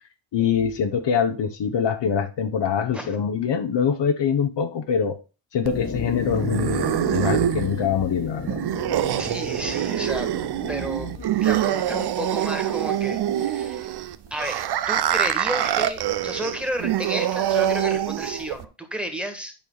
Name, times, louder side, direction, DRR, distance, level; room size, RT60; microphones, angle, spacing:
voice 1, 0.3-5.2 5.5-8.6, left 7 dB, 55° left, 1.0 m, -24 dB
sound 1, 5.7-13.8, left 5 dB, 35° left, 1.4 m, -35 dB
sound 2, 5.7-18.7, right 11 dB, 50° right, 0.7 m, -25 dB
voice 2, 9.2-10.3 10.7-11.1 11.3-13.9 14.3-19.5, equal, ahead, 1.9 m, -32 dB
9.0 x 4.6 x 4.0 m
supercardioid pair, 65°, 50 cm